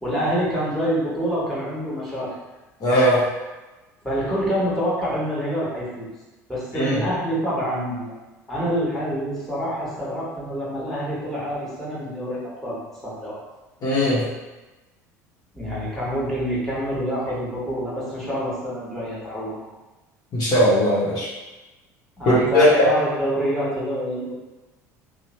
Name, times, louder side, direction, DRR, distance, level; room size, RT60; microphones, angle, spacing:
voice 1, 0.0-2.3 4.0-6.1 6.5-8.1 8.5-13.4 15.5-19.7 22.2-24.3, equal, 5° left, -8 dB, 1.3 m, -26 dB
voice 2, 2.8-3.2 6.7-7.0 13.8-14.2 20.3-21.3 22.3-22.9, equal, 45° left, -7 dB, 0.8 m, -18 dB
2.8 x 2.0 x 2.9 m, 1.1 s
hypercardioid pair, 70°, 9 cm